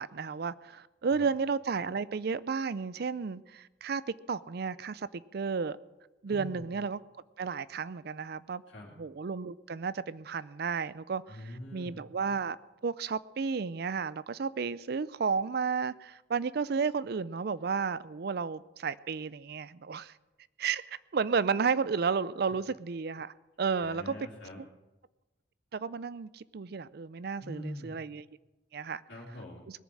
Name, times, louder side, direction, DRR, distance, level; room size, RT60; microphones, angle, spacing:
voice 1, 0.0-5.8 6.2-7.0 7.4-8.6 9.0-12.6 12.8-20.1 20.6-24.1 24.6-24.7 25.7-28.2 28.7-29.0, right 5 dB, 55° right, 0.5 m, -32 dB
voice 2, 6.3-6.7 8.7-8.9 11.3-12.0 22.4-22.5 23.8-24.6 27.4-27.9 29.1-29.7, left 1 dB, 80° left, 2.8 m, -44 dB
20.0 x 7.2 x 7.7 m
head